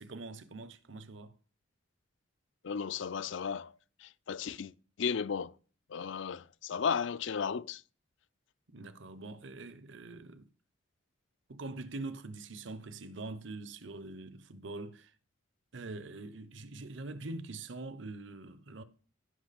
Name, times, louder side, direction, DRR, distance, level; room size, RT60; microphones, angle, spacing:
voice 1, 0.0-1.3 8.7-10.5 11.5-15.1 15.7-18.8, right 2 dB, 65° right, 0.8 m, -44 dB
voice 2, 2.6-3.7 4.0-4.7 5.0-5.5 5.9-7.8, left 6 dB, 65° left, 0.4 m, -34 dB
16.0 x 5.9 x 4.2 m
head